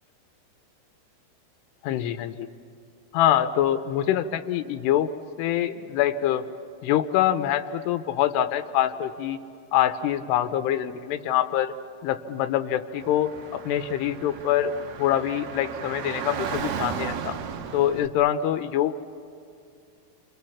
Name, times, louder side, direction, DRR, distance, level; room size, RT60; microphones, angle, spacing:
voice 1, 1.8-2.5 3.1-5.1 5.4-6.4 6.8-9.4 9.7-11.7 12.0-14.7 15.0-17.4 17.7-18.9, left 11 dB, 85° left, 10 dB, 2.9 m, -25 dB
Car / Traffic noise roadway noise, 13.0-18.1, right 7 dB, 80° right, 1.5 m, -35 dB
29.0 x 24.5 x 7.2 m, 2.4 s
omnidirectional pair, 4.7 m